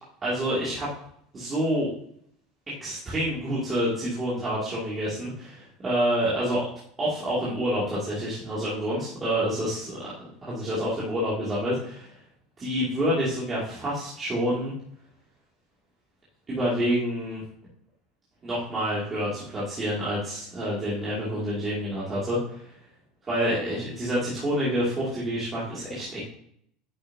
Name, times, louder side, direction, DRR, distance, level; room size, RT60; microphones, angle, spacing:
voice 1, 0.2-0.9 1.3-1.9 2.8-6.7 7.0-10.0 10.4-12.1 12.6-14.7 16.5-17.4 18.4-22.7 23.3-26.2, equal, 20° right, -8 dB, 2.5 m, -28 dB
9.4 x 7.6 x 2.8 m, 0.68 s
supercardioid pair, 155°, 0 cm